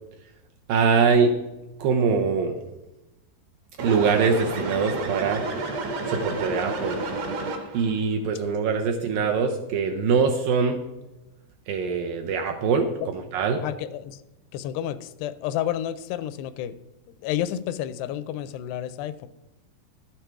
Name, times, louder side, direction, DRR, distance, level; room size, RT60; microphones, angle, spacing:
voice 1, 0.7-1.4 1.8-2.5 3.8-5.4 6.1-7.0 7.7-10.8 11.7-13.6, right 5 dB, 75° right, 3 dB, 2.1 m, -23 dB
sound 1, 3.8-7.9, right 3 dB, 60° right, 1.9 m, -30 dB
voice 2, 13.6-14.2 14.5-16.8 17.2-19.3, left 11 dB, 85° left, 14 dB, 2.6 m, -30 dB
12.0 x 8.9 x 4.6 m, 1.0 s
omnidirectional pair, 4.8 m